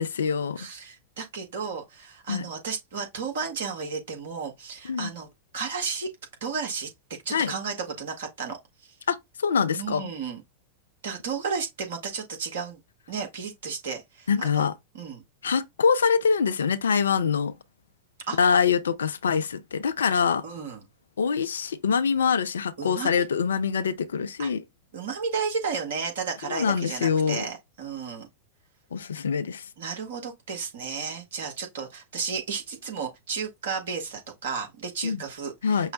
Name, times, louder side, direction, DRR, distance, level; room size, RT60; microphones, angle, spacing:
voice 1, 0.0-0.6 2.3-2.4 4.8-5.1 7.3-7.5 9.1-10.0 14.3-14.7 15.4-17.5 18.4-20.4 21.2-24.6 26.5-27.5 28.9-29.7 35.0-35.2 35.6-35.9, left 6 dB, 70° left, 0.4 m, -24 dB
voice 2, 0.6-5.3 5.5-6.1 6.4-6.9 7.2-8.6 9.7-10.4 11.0-12.8 13.1-14.7 14.9-15.2 18.3-18.4 20.4-20.8 22.8-23.2 24.4-24.5 24.9-28.3 29.8-35.9, right 5 dB, 60° right, 1.4 m, -33 dB
5.5 x 2.1 x 3.7 m
figure-of-eight pair, 90°, 0 cm